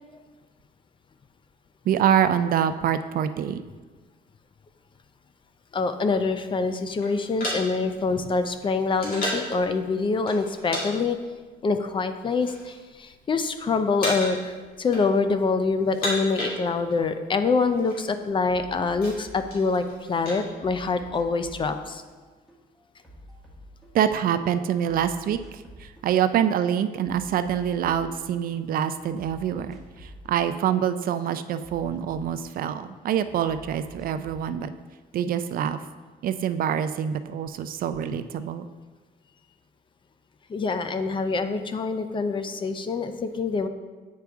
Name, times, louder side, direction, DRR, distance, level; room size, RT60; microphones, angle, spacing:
voice 1, 1.9-3.6 23.9-34.7 35.1-35.8 36.2-38.7, right 9 dB, 60° right, 11 dB, 0.4 m, -25 dB
voice 2, 5.7-11.2 11.6-22.0 40.5-43.7, left 4 dB, 30° left, 9 dB, 0.4 m, -25 dB
sound 1, 7.0-9.6 10.3-10.9 11.1-11.3 12.0-12.8 13.1-13.5 14.0-14.5 14.8-15.4 15.8-17.1 17.3-17.4 17.6-18.0 18.5-20.4, left 1 dB, 60° left, 2.2 m, -33 dB
sound 2, 17.9-20.0 20.3-24.3 24.6-26.1 26.4-28.6 28.9-32.9 33.2-34.5, equal, ahead, 1.3 m, -49 dB
8.4 x 4.6 x 3.5 m, 1.4 s
cardioid pair, 125°, 17 cm